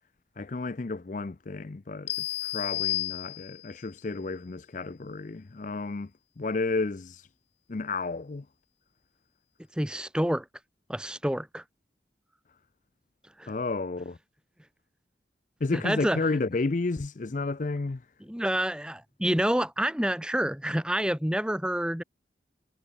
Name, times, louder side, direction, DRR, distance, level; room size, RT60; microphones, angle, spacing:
voice 1, 0.4-6.1 6.4-7.3 7.7-8.4 13.5-14.2 15.6-18.0, left 3 dB, 45° left, 0.5 m, -31 dB
sound 1, 2.1-3.8, left 15 dB, 75° left, 2.8 m, -32 dB
voice 2, 9.8-10.4 10.9-11.6 13.4-13.5 15.7-16.2 18.2-22.0, right 1 dB, 5° right, 0.9 m, -28 dB
head